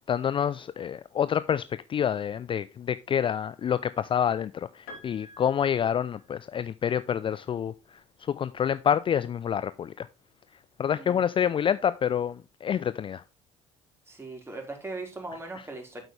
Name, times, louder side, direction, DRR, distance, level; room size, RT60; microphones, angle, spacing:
voice 1, 0.1-1.6 1.9-7.7 8.3-10.1 10.8-13.2, left 8 dB, 35° left, 0.5 m, -27 dB
Piano, 4.9-6.9 8.1-8.2, left 2 dB, 65° left, 3.2 m, -49 dB
voice 2, 14.1-16.0, right 2 dB, 15° right, 4.5 m, -39 dB
9.2 x 7.9 x 3.3 m
figure-of-eight pair, 60°, 16 cm